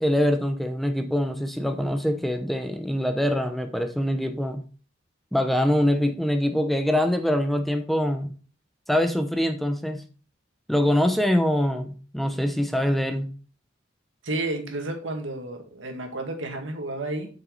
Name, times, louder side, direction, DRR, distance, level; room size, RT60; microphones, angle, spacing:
voice 1, 0.0-4.6 5.3-8.3 8.9-10.0 10.7-13.3, equal, ahead, 7 dB, 0.7 m, -24 dB
voice 2, 14.2-17.3, right 2 dB, 85° right, 3 dB, 2.0 m, -31 dB
8.0 x 6.2 x 3.9 m, 0.37 s
head